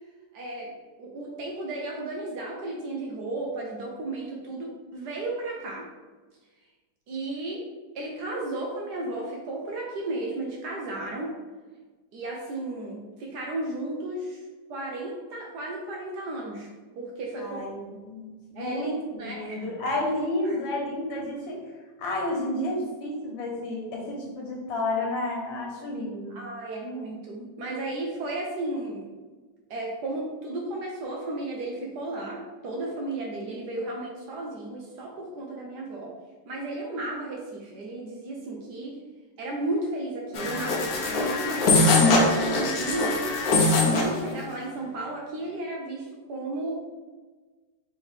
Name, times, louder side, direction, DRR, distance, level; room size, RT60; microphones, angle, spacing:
voice 1, 0.3-0.7 1.0-5.8 7.1-7.7 7.9-11.3 12.1-14.4 14.7-16.7 17.0-17.8 18.6-19.6 20.4-20.6 26.3-29.0 29.7-36.1 36.5-38.9 39.4-43.2 43.7-46.7, right 2 dB, 70° right, -1 dB, 1.2 m, -34 dB
voice 2, 17.4-21.6 22.0-26.4, left 1 dB, 90° left, -1 dB, 1.7 m, -31 dB
sound 1, 40.3-44.2, left 2 dB, 60° left, 1.1 m, -22 dB
4.5 x 3.5 x 3.3 m, 1.3 s
omnidirectional pair, 2.0 m